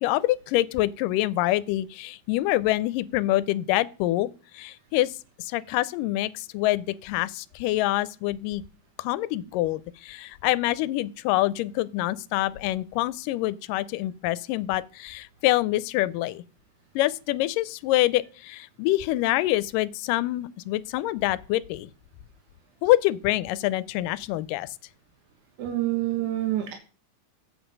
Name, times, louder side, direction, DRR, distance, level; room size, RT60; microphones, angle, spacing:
voice 1, 0.0-8.6 9.0-16.4 17.0-21.9 22.8-24.7, left 16 dB, 90° left, 2.2 m, -26 dB
voice 2, 25.6-26.7, right 14 dB, 70° right, 2.6 m, -27 dB
8.0 x 7.9 x 5.2 m
omnidirectional pair, 3.8 m